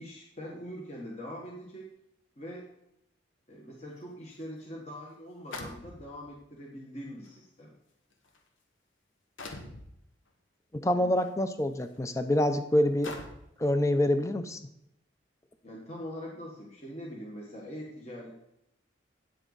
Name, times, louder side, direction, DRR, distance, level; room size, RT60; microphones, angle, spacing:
voice 1, 0.0-1.9 2.4-2.6 3.5-7.7 10.9-11.1 15.6-18.6, equal, 35° left, -3 dB, 1.3 m, -43 dB
sound 1, 4.4-4.5 5.5-6.3 7.2-7.3 8.1-8.4 9.4-9.9 11.2-11.3 11.9-12.0 13.0-13.6, left 2 dB, 80° left, 1.3 m, -42 dB
voice 2, 10.7-13.1 13.6-14.6, left 1 dB, 15° left, 9 dB, 0.5 m, -26 dB
9.2 x 7.8 x 4.0 m, 0.81 s
head